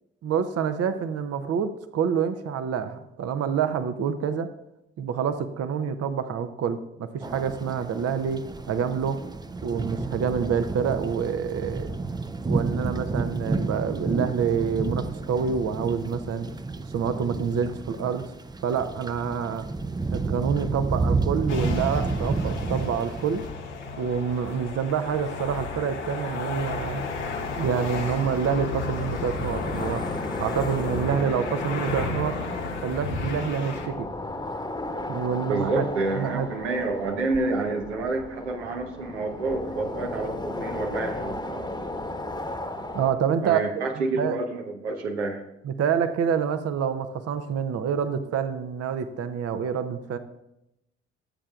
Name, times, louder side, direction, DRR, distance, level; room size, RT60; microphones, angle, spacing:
voice 1, 0.2-4.5 5.0-9.2 9.6-11.9 12.5-16.5 16.9-18.3 18.6-19.7 20.1-23.4 24.0-27.0 27.6-30.1 30.4-32.4 32.8-34.1 35.1-35.8 36.2-36.5 42.9-43.6 44.1-44.4 45.6-50.2, right 7 dB, 45° right, 10 dB, 0.7 m, -27 dB
sound 1, 7.2-23.5, right 3 dB, 10° right, 0.5 m, -30 dB
sound 2, 21.5-33.9, left 4 dB, 90° left, 1.0 m, -33 dB
sound 3, 26.0-43.1, left 2 dB, 10° left, 1.1 m, -35 dB
voice 2, 35.5-41.9 43.4-45.4, right 3 dB, 85° right, 2 dB, 1.0 m, -29 dB
15.0 x 7.5 x 2.4 m, 0.85 s
hypercardioid pair, 45°, 34 cm